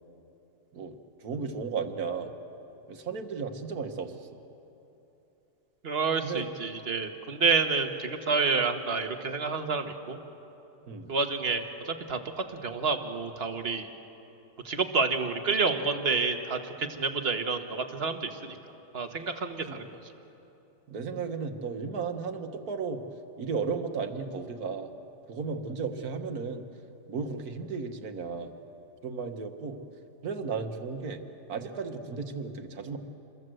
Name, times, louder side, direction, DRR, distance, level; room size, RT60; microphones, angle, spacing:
voice 1, 1.2-2.3 2.9-4.3 6.2-6.5 10.9-11.1 19.6-19.8 20.9-23.0 23.4-24.9 25.3-26.7 27.1-28.5 29.0-29.8 30.2-31.2 31.5-33.0, right 5 dB, 60° right, 6 dB, 1.8 m, -34 dB
voice 2, 5.8-10.2 11.1-12.2 12.5-13.9 14.6-18.5 18.9-19.9, right 4 dB, 35° right, 6 dB, 1.5 m, -29 dB
27.5 x 22.0 x 7.8 m, 3.0 s
omnidirectional pair, 1.9 m